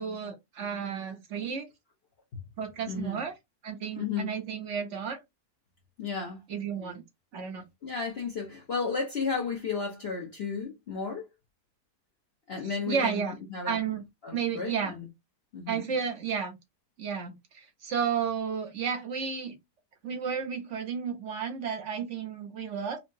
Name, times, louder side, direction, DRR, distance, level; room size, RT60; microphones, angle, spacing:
voice 1, 0.0-1.6 2.6-3.3 3.6-5.2 6.5-7.0 7.3-7.6 12.9-13.4 13.7-14.0 14.3-15.0 15.7-16.6 17.0-19.6 20.0-23.0, right 6 dB, 55° right, 0.9 m, -32 dB
voice 2, 2.9-3.2 4.0-4.4 6.0-6.4 7.8-11.2 12.5-13.8 14.2-15.1 15.5-15.8, left 5 dB, 50° left, 0.9 m, -33 dB
4.5 x 2.0 x 2.5 m
omnidirectional pair, 1.7 m